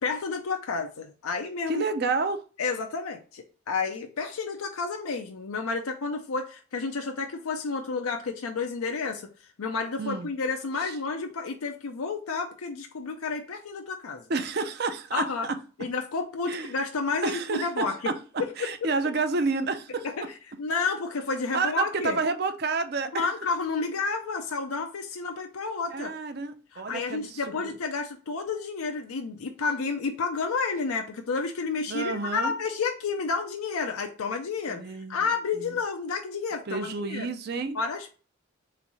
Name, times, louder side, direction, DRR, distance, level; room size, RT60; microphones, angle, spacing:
voice 1, 0.0-1.8 2.6-9.3 9.6-14.2 15.1-15.5 15.8-17.9 20.0-20.1 20.6-22.2 23.1-26.1 26.7-34.8 35.1-37.3 37.7-38.1, left 4 dB, 90° left, 0.5 m, -30 dB
voice 2, 1.7-2.4 10.0-10.3 10.8-10.9 14.3-15.6 16.5-16.7 17.2-20.1 21.5-23.3 25.9-27.8 31.9-32.6 34.7-35.8 36.7-37.8, right 4 dB, 50° right, 0.5 m, -30 dB
3.5 x 3.2 x 4.0 m
head